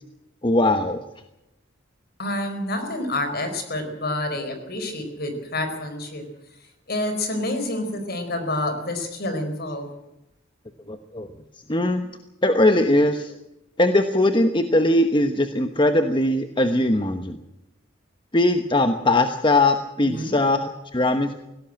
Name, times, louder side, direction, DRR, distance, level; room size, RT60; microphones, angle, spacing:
voice 1, 0.4-1.0 10.9-11.3 11.7-12.0 12.4-13.4 13.8-17.4 18.3-21.3, left 1 dB, 25° left, 7 dB, 1.1 m, -20 dB
voice 2, 2.2-6.2 6.9-9.9 20.0-20.3, left 1 dB, 50° left, 7 dB, 4.5 m, -28 dB
19.0 x 17.0 x 8.8 m, 0.90 s
head